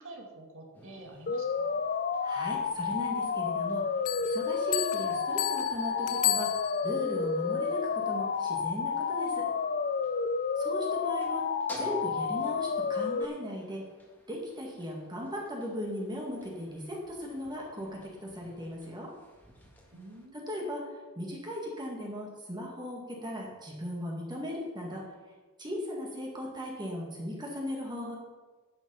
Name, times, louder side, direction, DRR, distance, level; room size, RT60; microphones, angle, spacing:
voice 1, 0.0-1.8 19.9-20.5, right 2 dB, 60° right, 1 dB, 2.3 m, -48 dB
sound 1, 0.7-20.3, equal, 10° left, 1.9 m, -55 dB
sound 2, 1.3-13.2, left 5 dB, 40° left, 0.5 m, -30 dB
voice 2, 2.2-3.8 4.2-9.5 10.6-11.5 11.8-13.8 14.3-19.1 20.3-25.0 25.6-28.2, equal, 20° right, -2 dB, 2.0 m, -38 dB
Bell, 4.1-7.1, left 14 dB, 80° left, 0.8 m, -33 dB
10.5 x 8.6 x 5.6 m, 1.3 s
head